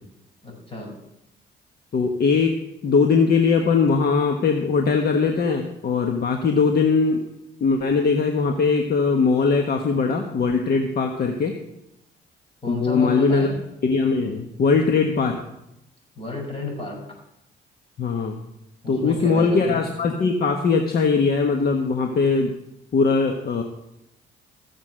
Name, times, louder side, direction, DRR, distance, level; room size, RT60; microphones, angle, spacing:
voice 1, 0.4-0.9 12.6-13.5 16.2-17.0 18.8-19.8, left 3 dB, 30° left, -1 dB, 6.2 m, -31 dB
voice 2, 1.9-2.5 2.8-7.2 7.6-11.5 12.7-13.5 13.8-15.4 18.0-18.4 18.9-22.5 22.9-23.6, left 4 dB, 50° left, 4 dB, 1.3 m, -20 dB
15.0 x 7.3 x 6.3 m, 0.85 s
cardioid pair, 90°, 20 cm